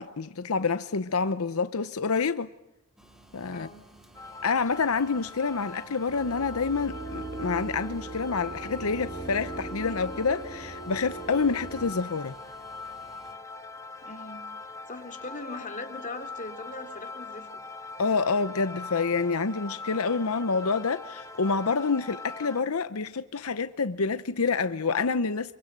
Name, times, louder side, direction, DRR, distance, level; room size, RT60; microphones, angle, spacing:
voice 1, 0.0-2.5 3.3-3.7 4.4-12.3 18.0-25.5, left 4 dB, 85° left, 0.8 m, -27 dB
sound 1, 3.0-13.3, right 1 dB, ahead, 2.9 m, -55 dB
voice 2, 3.5-3.8 14.0-14.4 14.9-17.5, left 2 dB, 40° left, 3.0 m, -40 dB
sound 2, 4.1-22.6, left 3 dB, 15° left, 1.8 m, -42 dB
sound 3, 6.1-11.9, right 3 dB, 80° right, 5.4 m, -39 dB
26.0 x 24.5 x 7.5 m
head